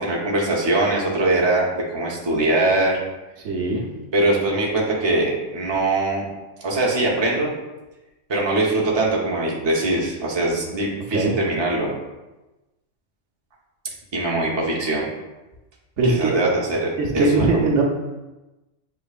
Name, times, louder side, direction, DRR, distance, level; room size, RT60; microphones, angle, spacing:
voice 1, 0.0-3.0 4.1-6.2 6.6-7.5 8.3-11.9 14.1-15.1 16.1-17.6, right 2 dB, 25° right, -3 dB, 0.8 m, -22 dB
voice 2, 3.4-3.8 11.1-11.3 16.0-16.4 17.0-17.8, right 3 dB, 70° right, -1 dB, 1.1 m, -20 dB
6.8 x 3.0 x 2.4 m, 1.1 s
omnidirectional pair, 1.3 m